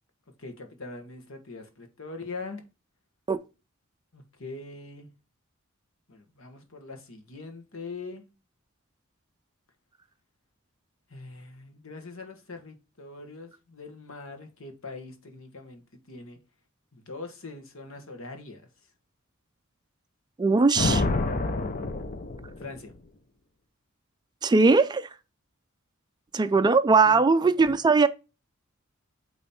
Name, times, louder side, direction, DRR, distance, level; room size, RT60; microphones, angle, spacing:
voice 1, 0.4-2.6 4.1-5.1 6.1-8.2 11.1-16.4 16.9-18.6 22.6-22.9 27.0-27.2, left 3 dB, 70° left, 1.4 m, -42 dB
voice 2, 20.4-21.0 24.4-25.1 26.3-28.1, right 4 dB, 20° right, 0.3 m, -20 dB
Thunder, 20.7-23.0, left 2 dB, 40° left, 0.7 m, -28 dB
8.8 x 3.1 x 4.3 m
head